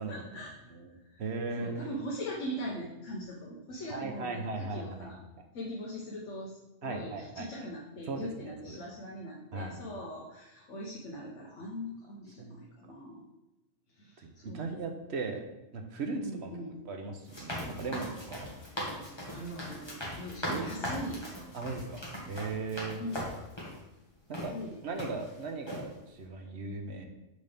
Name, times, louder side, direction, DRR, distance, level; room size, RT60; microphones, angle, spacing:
voice 1, 0.1-0.7 1.1-1.2 1.5-5.2 5.5-13.2 13.9-14.8 16.2-16.8 18.5-21.3 22.9-23.3 24.4-25.2, equal, 70° left, -2 dB, 1.2 m, -41 dB
voice 2, 1.2-1.9 3.9-5.1 6.8-7.5 8.1-8.8 9.5-9.8 12.4-12.6 12.8-12.9 14.2-15.4 15.7-16.5 16.9-18.5 20.5-20.7 21.5-23.0 24.3-24.5 24.8-27.1, right 3 dB, 60° right, 4 dB, 1.0 m, -38 dB
sound 1, 17.2-23.8 24.3-24.5 25.0-25.4 25.7-25.8, equal, 20° left, 1.5 m, -39 dB
6.5 x 5.2 x 3.4 m, 0.97 s
omnidirectional pair, 1.3 m